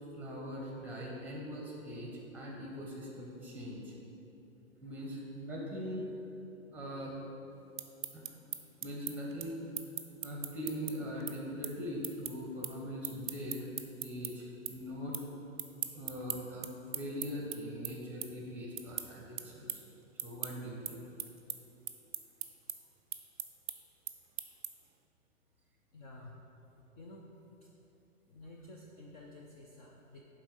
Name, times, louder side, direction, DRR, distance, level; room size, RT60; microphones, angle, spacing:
voice 1, 0.1-3.9 4.8-6.0 6.7-7.2 8.1-8.3 8.8-9.6 10.2-13.7 14.0-15.2 15.9-16.7 16.9-19.8 20.2-21.0, equal, 5° right, -2 dB, 1.1 m, -41 dB
sound 1, 7.6-14.3 14.6-15.3 15.5-24.9, right 10 dB, 40° right, 0.4 m, -41 dB
voice 2, 25.9-26.5 26.9-27.3 27.6-27.7 28.3-30.2, left 2 dB, 30° left, -1 dB, 0.5 m, -51 dB
9.3 x 3.7 x 5.1 m, 3.0 s
hypercardioid pair, 125°, 41 cm